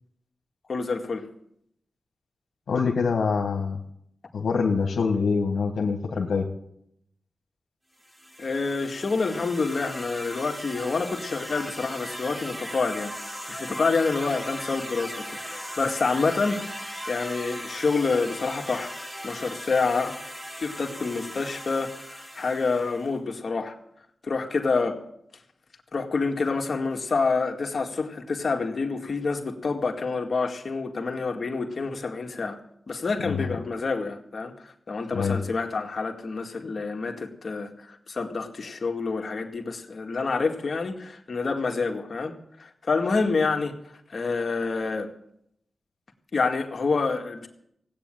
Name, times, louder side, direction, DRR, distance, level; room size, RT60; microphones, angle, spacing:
voice 1, 0.7-1.3 8.4-13.1 13.5-16.6 17.1-19.0 19.2-20.2 20.6-23.8 24.2-25.0 25.9-32.6 32.9-43.8 44.1-45.1 46.3-47.5, left 4 dB, 60° left, 2.1 m, -27 dB
voice 2, 2.7-3.8 4.3-6.5 33.2-33.5 35.1-35.4, left 5 dB, 90° left, 1.6 m, -25 dB
sound 1, 8.0-23.1, equal, 10° right, 2.3 m, -38 dB
17.5 x 8.9 x 9.1 m
cardioid pair, 65°, 0 cm